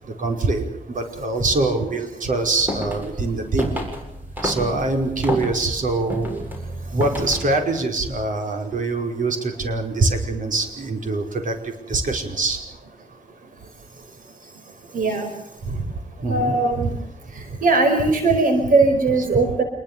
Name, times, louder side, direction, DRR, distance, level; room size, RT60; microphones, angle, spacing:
voice 1, 0.0-3.8 4.4-6.5 6.9-12.6 15.6-15.8 16.2-16.9, right 3 dB, 70° right, 4 dB, 5.2 m, -24 dB
sound 1, 2.4-7.6, equal, 15° right, 7.7 m, -31 dB
voice 2, 14.9-15.3 16.3-16.9 17.6-19.6, right 3 dB, 85° right, 6 dB, 4.8 m, -19 dB
27.5 x 22.0 x 7.0 m, 0.87 s
wide cardioid pair, 165°, 14 cm